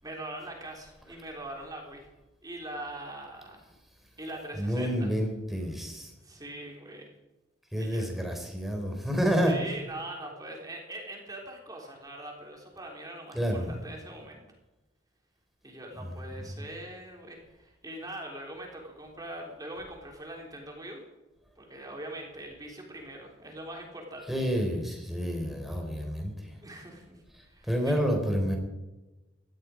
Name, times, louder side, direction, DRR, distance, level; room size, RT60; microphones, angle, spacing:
voice 1, 0.0-2.1 2.4-3.6 4.2-5.1 6.2-7.1 7.8-8.1 9.4-14.4 15.6-21.0 21.6-24.4 25.8-25.9 26.6-28.0, right 1 dB, 20° right, 0 dB, 3.6 m, -42 dB
voice 2, 4.6-6.1 7.7-9.6 13.3-13.7 16.0-16.1 24.3-26.3 27.7-28.6, equal, ahead, 2 dB, 3.9 m, -29 dB
18.5 x 13.0 x 5.1 m, 1.0 s
head